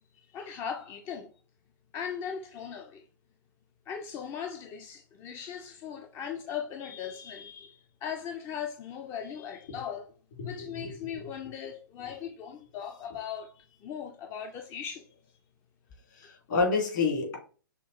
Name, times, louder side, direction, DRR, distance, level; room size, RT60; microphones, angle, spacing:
voice 1, 0.1-1.3 1.9-3.0 3.9-10.1 10.4-15.1, left 8 dB, 25° left, 0.3 m, -39 dB
voice 2, 10.4-11.3 16.2-17.4, left 4 dB, 55° left, 2.2 m, -29 dB
5.6 x 2.3 x 3.0 m
hypercardioid pair, 125°, 11 cm